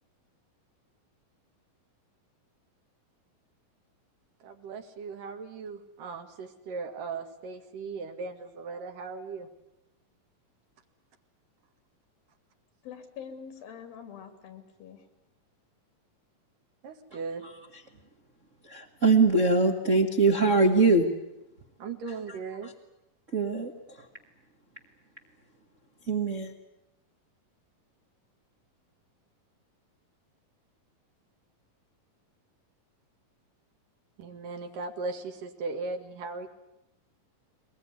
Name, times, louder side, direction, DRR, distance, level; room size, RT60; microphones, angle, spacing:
voice 1, 4.4-9.5 16.8-17.4 21.8-22.7 34.2-36.5, right 4 dB, 70° right, 6 dB, 3.5 m, -38 dB
voice 2, 12.8-15.0, left 7 dB, 90° left, 8 dB, 4.6 m, -44 dB
voice 3, 18.7-21.1 23.3-23.7 26.1-26.5, right 3 dB, 45° right, 2 dB, 0.9 m, -22 dB
23.0 x 20.5 x 9.6 m, 0.89 s
omnidirectional pair, 4.0 m